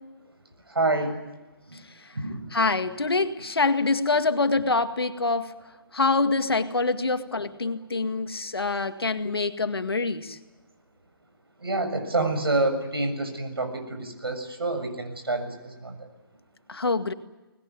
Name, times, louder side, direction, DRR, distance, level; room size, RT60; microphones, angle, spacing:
voice 1, 0.7-1.2 1.7-1.8 2.1-2.5 11.6-16.1, right 2 dB, 85° right, 6 dB, 7.1 m, -28 dB
voice 2, 2.5-5.5 5.9-10.4 16.7-17.1, left 3 dB, 85° left, 8 dB, 2.1 m, -25 dB
23.0 x 20.0 x 9.5 m, 1.1 s
figure-of-eight pair, 150°, 12 cm